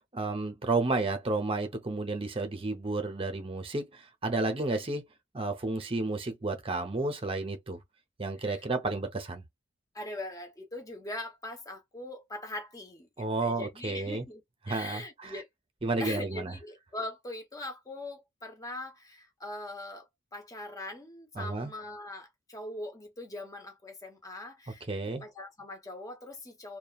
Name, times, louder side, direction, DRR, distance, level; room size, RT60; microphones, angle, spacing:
voice 1, 0.1-5.1 5.3-7.8 8.2-9.4 13.2-14.2 14.7-15.3 15.8-16.5 21.4-21.7 24.9-25.2, right 3 dB, 25° right, 0.7 m, -31 dB
voice 2, 9.9-14.4 14.7-15.5 16.0-26.8, left 2 dB, 15° left, 0.9 m, -41 dB
2.9 x 2.2 x 2.3 m
head